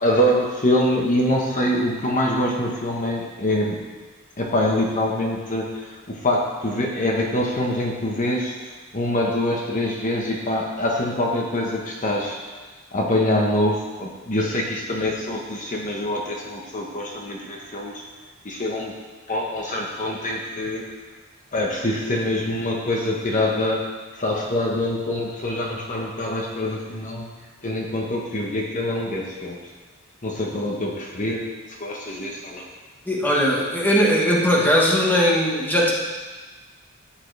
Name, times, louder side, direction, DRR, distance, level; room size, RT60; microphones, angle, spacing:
voice 1, 0.0-3.8 4.4-8.5 8.9-12.4 12.9-18.0 18.4-18.9 19.3-20.8 21.5-23.9 24.2-27.3 27.6-29.6 30.2-31.5 31.8-32.6, left 1 dB, 35° left, -1 dB, 1.2 m, -24 dB
voice 2, 33.0-35.9, equal, 10° left, -3 dB, 1.4 m, -19 dB
13.5 x 8.9 x 3.4 m, 1.3 s
head